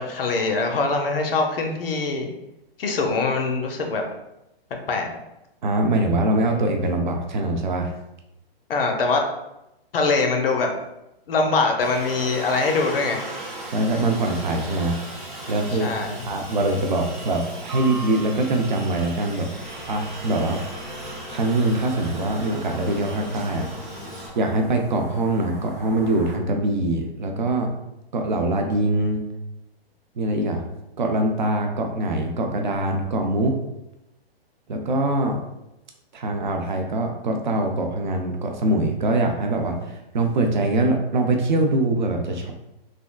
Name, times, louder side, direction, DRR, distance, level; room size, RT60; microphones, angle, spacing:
voice 1, 0.0-2.3 2.8-4.0 4.9-5.1 8.7-9.3 9.9-10.7 11.3-13.2 15.7-16.2, left 3 dB, 65° left, 3 dB, 0.6 m, -23 dB
voice 2, 5.6-7.9 13.7-15.0 15.5-15.9 16.3-19.5 19.9-20.6 21.3-23.7 24.4-27.7 28.1-29.2 30.2-30.6 31.0-33.6 34.7-35.4 36.1-42.5, right 2 dB, 50° right, 3 dB, 0.4 m, -23 dB
Aircraft, 11.8-24.3, right 1 dB, 25° right, 0.9 m, -36 dB
sound 1, 19.6-26.4, equal, 15° left, 0.4 m, -44 dB
3.4 x 2.3 x 2.2 m, 0.90 s
hypercardioid pair, 180°, 31 cm